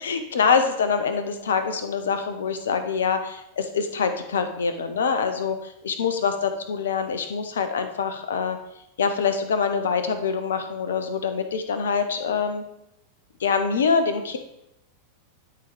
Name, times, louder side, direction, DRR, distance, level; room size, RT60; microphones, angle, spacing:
voice 1, 0.0-8.6 9.0-12.6 13.4-14.4, left 6 dB, 65° left, 8 dB, 0.9 m, -25 dB
11.5 x 4.0 x 4.9 m, 0.83 s
figure-of-eight pair, 90°, 0 cm